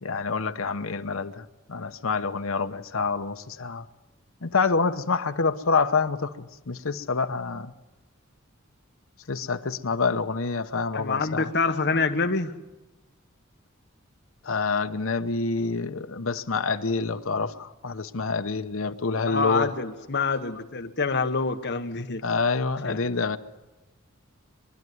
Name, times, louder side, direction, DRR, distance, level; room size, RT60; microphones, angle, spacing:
voice 1, 0.0-3.8 4.4-7.7 9.3-11.5 14.4-19.7 22.2-23.4, left 4 dB, 75° left, 0.9 m, -27 dB
voice 2, 10.9-12.5 19.3-22.2 22.8-23.0, left 4 dB, 55° left, 1.2 m, -26 dB
23.5 x 12.0 x 9.4 m
head